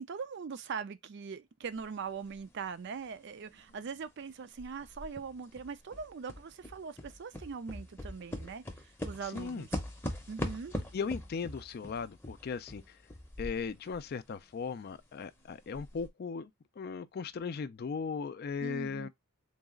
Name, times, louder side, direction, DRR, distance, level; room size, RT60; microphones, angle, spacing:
voice 1, 0.0-9.8 10.3-10.7 18.6-19.1, right 5 dB, 50° right, 0.4 m, -41 dB
sound 1, 1.8-1.9 2.3-4.2 4.6-14.1 14.4-14.5 15.0-15.1 15.6-16.1, left 1 dB, 10° left, 0.7 m, -41 dB
voice 2, 9.3-9.6 10.9-13.0 13.4-16.5 16.8-19.1, left 5 dB, 45° left, 0.3 m, -37 dB
3.9 x 2.4 x 3.6 m
head